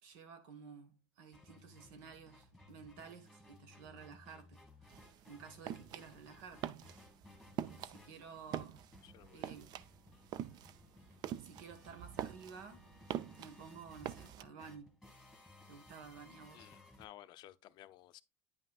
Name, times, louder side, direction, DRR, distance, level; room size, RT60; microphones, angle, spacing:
voice 1, 0.0-5.0 5.3-6.7 7.8-8.9 9.3-9.7 11.0-12.9 13.4-15.0 15.7-16.7, right 6 dB, 80° right, 1.5 m, -53 dB
sound 1, 1.3-17.0, left 2 dB, ahead, 1.9 m, -60 dB
sound 2, 4.9-14.4, right 11 dB, 45° right, 0.4 m, -44 dB
voice 2, 9.0-9.6 16.5-18.2, left 14 dB, 45° left, 0.5 m, -56 dB
9.3 x 5.6 x 2.4 m
cardioid pair, 150°, 10 cm